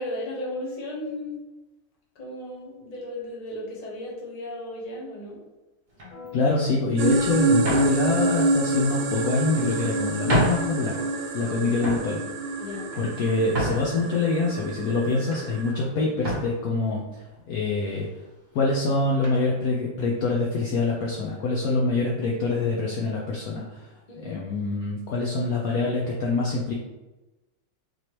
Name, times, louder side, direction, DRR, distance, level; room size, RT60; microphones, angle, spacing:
voice 1, 0.0-1.4 2.1-5.4 11.5-12.0 12.6-12.9 24.1-24.4, left 1 dB, 45° left, -3 dB, 0.5 m, -35 dB
sound 1, 5.9-6.3 7.0-7.1 7.6-8.0 9.0-9.5 10.0-10.1 10.3-10.7 11.1-11.5 11.8-12.1 12.7-14.0 14.6-15.4 15.7-15.9 16.2-16.6 17.4-17.5 17.8-18.0 19.2-19.4, right 1 dB, 50° right, 0.5 m, -29 dB
sound 2, 6.1-6.3 8.9-11.3, left 2 dB, 30° left, 1.0 m, -45 dB
voice 2, 6.3-11.0 11.3-12.2 12.9-18.2 18.5-26.7, left 3 dB, 85° left, -3 dB, 0.8 m, -25 dB
sound 3, 7.0-15.7, right 2 dB, 75° right, 1.1 m, -27 dB
4.1 x 3.1 x 2.9 m, 1.1 s
omnidirectional pair, 2.2 m